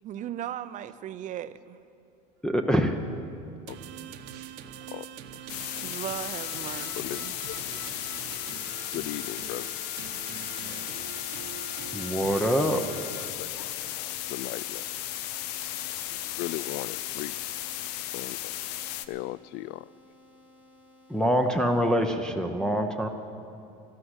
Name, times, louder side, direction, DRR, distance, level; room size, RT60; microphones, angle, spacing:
voice 1, 0.0-1.8 5.8-7.3, right 11 dB, 40° right, 0.6 m, -37 dB
voice 2, 2.4-3.0 11.9-12.9 21.1-23.1, equal, 5° left, 0.8 m, -25 dB
sound 1, 3.7-13.3, right 9 dB, 60° right, 1.0 m, -44 dB
sound 2, 5.5-19.1, left 13 dB, 85° left, 0.7 m, -35 dB
voice 3, 7.0-7.8 8.9-9.7 10.7-11.0 13.3-14.9 16.1-17.3 17.6-17.7 18.1-18.7 19.1-19.9, left 17 dB, 60° left, 0.4 m, -38 dB
sound 3, 11.0-22.1, left 1 dB, 25° left, 2.3 m, -57 dB
13.0 x 12.0 x 8.1 m
supercardioid pair, 120°, 20 cm